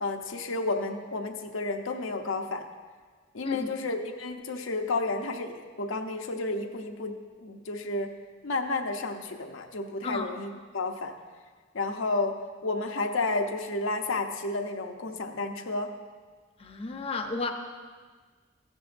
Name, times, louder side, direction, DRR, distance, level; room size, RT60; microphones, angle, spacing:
voice 1, 0.0-2.7 3.3-8.1 8.4-11.1 11.7-15.9, left 2 dB, 80° left, 4 dB, 0.7 m, -31 dB
voice 2, 3.4-3.8 10.0-10.3 16.6-17.5, left 3 dB, 30° left, 4 dB, 0.6 m, -32 dB
14.0 x 9.9 x 2.6 m, 1.5 s
head